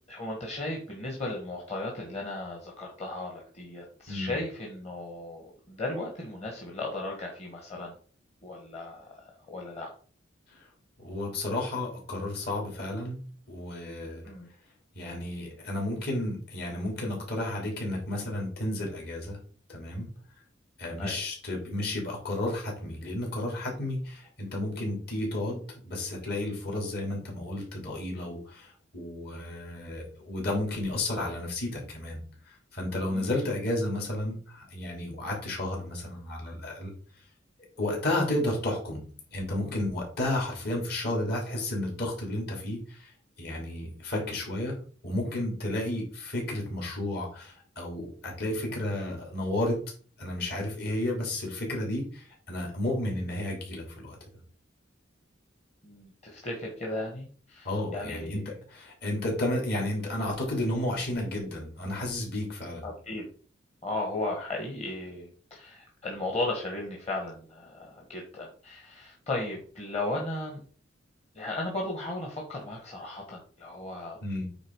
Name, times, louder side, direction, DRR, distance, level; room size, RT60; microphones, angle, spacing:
voice 1, 0.1-7.9 8.4-9.9 14.2-14.5 21.0-21.2 33.1-33.5 55.8-58.5 62.8-63.2 63.8-70.6 71.3-74.2, left 2 dB, 35° left, -1 dB, 1.6 m, -36 dB
voice 2, 11.0-13.2 13.5-14.2 14.9-19.4 19.7-20.1 20.8-32.2 32.5-36.9 37.8-39.0 39.3-43.1 43.4-44.8 45.0-49.8 50.2-54.2 57.6-58.4 58.7-62.8 74.2-74.4, left 1 dB, 55° left, -1 dB, 3.3 m, -32 dB
9.0 x 3.7 x 4.7 m, 0.43 s
head